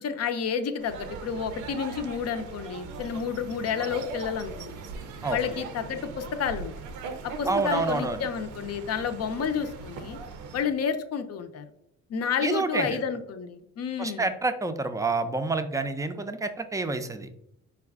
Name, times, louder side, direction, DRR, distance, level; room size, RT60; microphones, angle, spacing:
voice 1, 0.0-4.8 5.3-6.7 7.2-10.2 10.5-11.6 12.1-14.3, left 6 dB, 55° left, 8 dB, 0.5 m, -30 dB
sound 1, 0.8-10.6, right 4 dB, 90° right, 0.6 m, -40 dB
voice 2, 7.5-8.2 12.4-13.0 14.0-17.3, right 3 dB, 10° right, 8 dB, 0.4 m, -28 dB
4.7 x 2.3 x 3.5 m, 0.74 s
cardioid pair, 90°, 30 cm